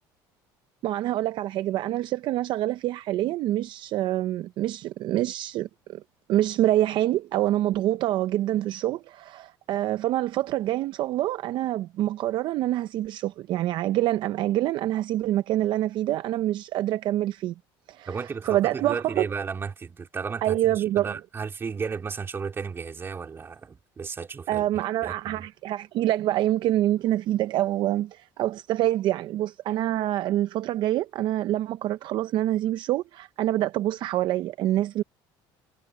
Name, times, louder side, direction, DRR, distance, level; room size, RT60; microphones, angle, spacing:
voice 1, 0.8-6.0 6.3-17.5 17.9-19.3 20.4-21.1 24.5-35.0, right 14 dB, 55° right, 0.6 m, -26 dB
voice 2, 18.1-24.7 25.0-25.4, right 5 dB, 25° right, 3.4 m, -34 dB
cardioid pair, 140°, 10 cm